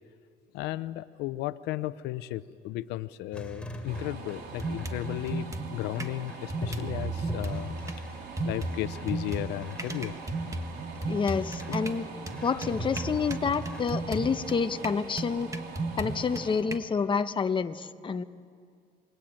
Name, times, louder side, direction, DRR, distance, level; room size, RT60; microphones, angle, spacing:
voice 1, 0.5-7.7 8.4-10.2 11.7-11.8, left 15 dB, 90° left, 15 dB, 0.7 m, -35 dB
sound 1, 3.3-5.3 5.9-11.0 11.3-12.0 12.3-13.8, right 2 dB, 5° left, 3.5 m, -40 dB
sound 2, 3.9-4.0 4.6-6.2 6.5-8.0 8.4-16.8, right 2 dB, 20° right, 1.7 m, -35 dB
sound 3, 3.9-16.6, right 4 dB, 75° right, 4.2 m, -44 dB
voice 2, 11.1-12.1 12.4-15.5 16.0-18.2, left 5 dB, 30° left, 9 dB, 1.0 m, -28 dB
28.0 x 22.5 x 8.9 m, 2.2 s
cardioid pair, 110°, 17 cm